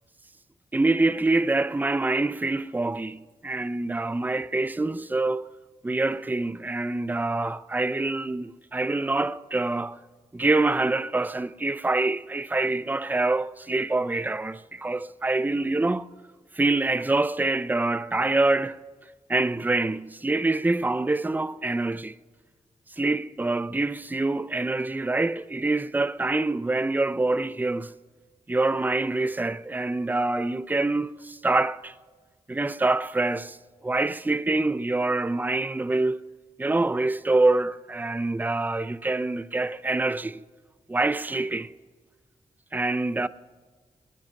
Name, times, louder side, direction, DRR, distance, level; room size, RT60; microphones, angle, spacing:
voice 1, 0.7-5.5 5.8-10.0 10.3-16.1 16.5-18.8 19.3-22.2 22.9-27.9 28.5-31.9 32.5-33.6 33.8-36.2 36.6-40.4 40.9-41.7 42.7-43.3, right 2 dB, 15° right, 0.5 m, -25 dB
21.0 x 10.5 x 6.4 m
cardioid pair, 60°, 13 cm